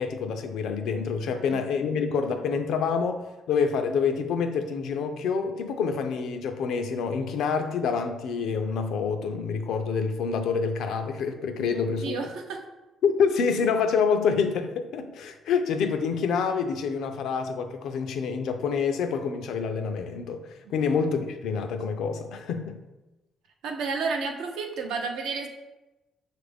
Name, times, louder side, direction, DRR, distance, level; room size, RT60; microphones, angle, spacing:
voice 1, 0.0-12.2 13.0-22.8, left 5 dB, 80° left, 7 dB, 0.4 m, -27 dB
voice 2, 11.7-12.6 20.6-20.9 23.6-25.5, right 4 dB, 85° right, 3 dB, 0.6 m, -32 dB
6.0 x 2.5 x 3.4 m, 1.0 s
cardioid pair, 90°, 0 cm